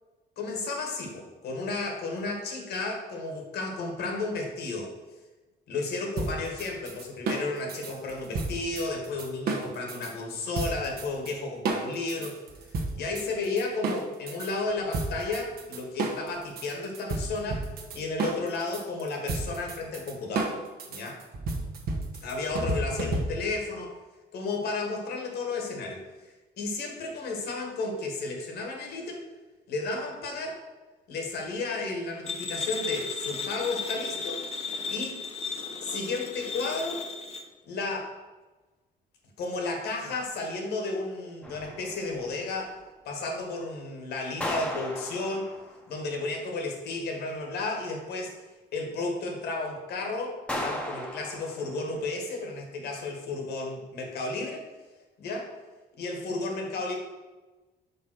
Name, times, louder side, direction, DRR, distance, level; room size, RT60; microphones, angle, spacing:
voice 1, 0.4-4.9 5.7-12.4 12.7-17.7 17.9-20.6 20.9-21.2 22.2-23.9 24.3-29.2 29.7-30.6 31.1-35.2 35.8-37.0 37.7-38.1 39.4-42.8 43.0-45.5 45.9-48.4 48.7-54.6 55.2-55.5 56.0-56.9, left 3 dB, 70° left, 2 dB, 1.7 m, -33 dB
sound 1, 6.2-10.1 10.6-11.3 11.7-14.5 14.9-23.6, right 3 dB, 60° right, 1.1 m, -32 dB
sound 2, 32.3-37.4, left 5 dB, 35° left, 0.8 m, -35 dB
sound 3, 41.4-42.3 44.4-45.9 50.5-52.0, left 1 dB, 5° left, 0.9 m, -36 dB
5.4 x 5.3 x 6.2 m, 1.2 s
cardioid pair, 165°, 17 cm